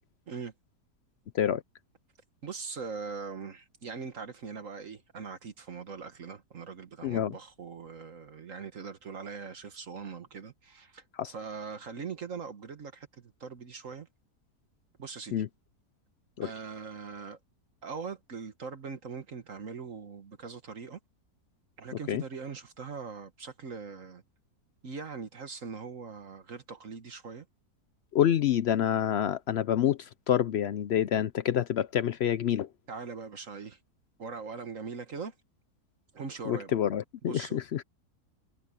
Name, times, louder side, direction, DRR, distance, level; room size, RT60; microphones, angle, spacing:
voice 1, 2.4-14.1 15.0-15.4 16.4-17.4 17.8-21.0 21.8-24.2 24.8-27.4 32.9-33.8 34.2-35.3 36.1-36.7 37.2-37.6, right 5 dB, 55° right, 1.6 m, -41 dB
voice 2, 7.0-7.3 11.2-11.3 15.3-15.5 16.4-16.5 22.1-22.2 28.1-32.7 36.5-37.8, left 10 dB, 80° left, 0.5 m, -27 dB
omnidirectional pair, 1.7 m